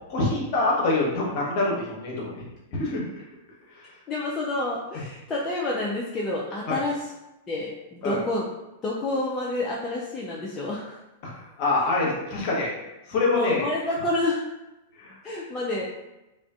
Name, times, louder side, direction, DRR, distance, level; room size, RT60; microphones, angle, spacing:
voice 1, 0.1-2.3 2.7-3.0 6.7-6.8 8.0-8.2 11.2-11.3 11.6-12.7 13.1-13.6 15.0-15.1, left 2 dB, 45° left, -3 dB, 0.8 m, -25 dB
voice 2, 4.1-7.1 7.5-8.5 8.8-11.0 11.8-12.4 13.3-14.5 15.2-15.8, left 2 dB, 25° left, -5 dB, 0.4 m, -29 dB
2.4 x 2.4 x 2.2 m, 0.97 s
figure-of-eight pair, 100°, 0 cm